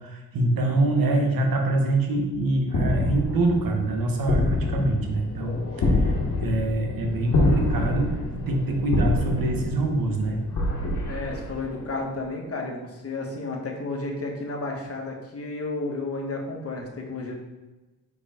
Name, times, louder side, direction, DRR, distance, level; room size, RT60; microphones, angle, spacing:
voice 1, 0.0-10.4, right 2 dB, 80° right, 2 dB, 1.1 m, -25 dB
sound 1, 2.7-12.0, left 2 dB, 60° left, 1.3 m, -27 dB
voice 2, 11.0-17.3, left 2 dB, 40° left, 1 dB, 1.3 m, -32 dB
5.0 x 4.7 x 4.3 m, 1.1 s
cardioid pair, 85°, 34 cm